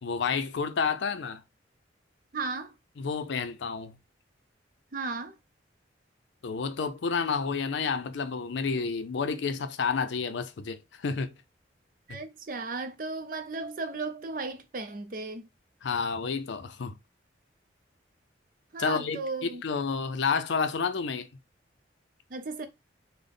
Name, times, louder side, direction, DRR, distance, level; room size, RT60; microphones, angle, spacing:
voice 1, 0.0-1.4 3.0-4.0 6.4-11.3 12.1-12.2 15.8-17.0 18.8-21.3, left 5 dB, 75° left, 0.5 m, -30 dB
voice 2, 2.3-2.7 4.9-5.3 12.1-15.5 18.7-19.6 22.3-22.7, right 3 dB, 45° right, 0.5 m, -35 dB
3.4 x 2.1 x 3.7 m
head